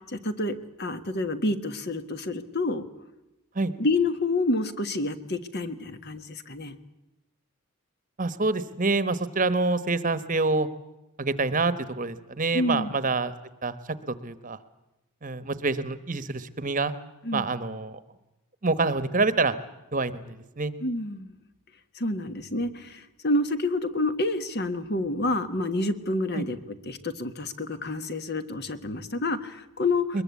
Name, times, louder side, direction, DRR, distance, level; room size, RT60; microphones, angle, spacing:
voice 1, 0.0-2.8 3.8-6.7 12.5-12.9 17.2-17.5 20.8-21.3 21.9-26.6 26.8-30.2, left 2 dB, 45° left, 10 dB, 1.5 m, -28 dB
voice 2, 8.2-10.7 11.2-13.3 13.6-13.7 14.1-14.6 15.2-16.9 17.3-18.0 18.6-19.5 19.9-20.7 26.3-26.5 30.1-30.2, right 3 dB, 35° right, 13 dB, 1.1 m, -26 dB
22.0 x 21.5 x 8.4 m, 0.94 s
head